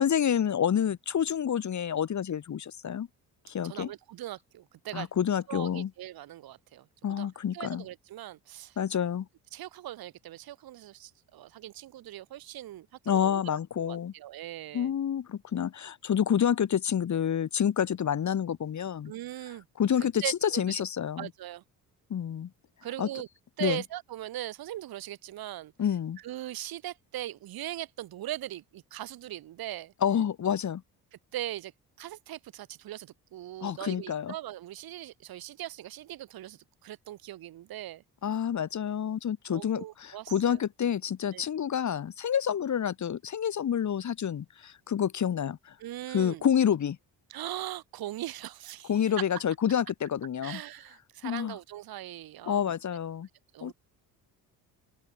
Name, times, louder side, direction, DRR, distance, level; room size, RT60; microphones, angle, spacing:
voice 1, 0.0-3.1 3.5-3.9 4.9-5.9 7.0-7.8 8.8-9.3 13.1-14.1 14.7-19.1 19.8-21.3 22.1-22.5 23.0-23.1 23.6-23.8 25.8-26.2 30.0-30.8 33.6-34.3 38.2-45.7 46.1-47.0 48.9-50.6 51.2-51.6 52.4-53.3 53.6-53.7, left 9 dB, 45° left, 2.0 m, -28 dB
voice 2, 3.6-5.1 5.5-6.9 7.2-7.3 7.5-8.8 9.5-14.9 19.1-19.6 20.0-20.8 21.2-21.6 22.8-23.3 23.6-25.7 26.2-29.9 31.3-31.7 32.0-38.0 39.5-40.6 41.3-41.4 45.8-46.4 47.3-49.1 50.4-52.6 53.5-53.7, right 13 dB, 70° right, 1.5 m, -40 dB
open air
cardioid pair, 100°, 38 cm